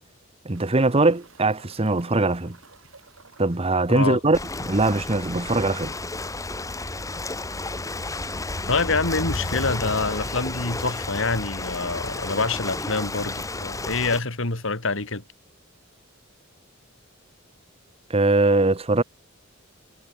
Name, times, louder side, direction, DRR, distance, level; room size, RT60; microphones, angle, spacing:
voice 1, 0.4-2.6 3.4-4.4 4.6-5.9 18.1-19.0, right 2 dB, 30° right, 1.1 m, -21 dB
sound 1, 0.5-5.9 6.2-6.3 6.7-6.8 9.5-9.6 11.3-11.4 12.2-12.3 12.5-12.6 13.5-13.6 13.8-14.4 15.4-15.5, right 4 dB, 85° right, 7.3 m, -54 dB
sound 2, 2.8-2.9 3.2-13.5 13.8-13.9, left 1 dB, 50° left, 2.7 m, -39 dB
voice 2, 3.9-4.2 8.7-15.2, left 3 dB, 70° left, 2.7 m, -26 dB
Ocean, 4.3-14.2, left 2 dB, 15° left, 1.3 m, -32 dB
head